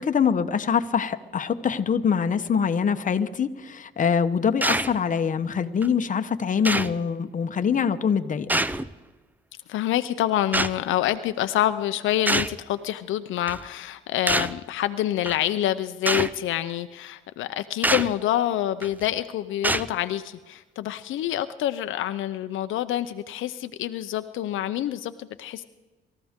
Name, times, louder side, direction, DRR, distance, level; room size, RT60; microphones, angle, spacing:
voice 1, 0.0-8.6, left 7 dB, 40° left, 9 dB, 1.0 m, -24 dB
sound 1, 4.6-5.0 5.8-5.9 6.6-7.0 8.5-8.9 10.5-10.8 12.3-12.6 13.5-13.6 14.3-14.6 15.3-15.4 16.1-16.3 17.8-18.1 18.8-19.1 19.6-19.9, right 1 dB, 10° right, 0.6 m, -24 dB
voice 2, 9.7-25.6, left 12 dB, 80° left, 10 dB, 0.6 m, -27 dB
25.0 x 14.0 x 3.7 m, 1.2 s
cardioid pair, 90°, 20 cm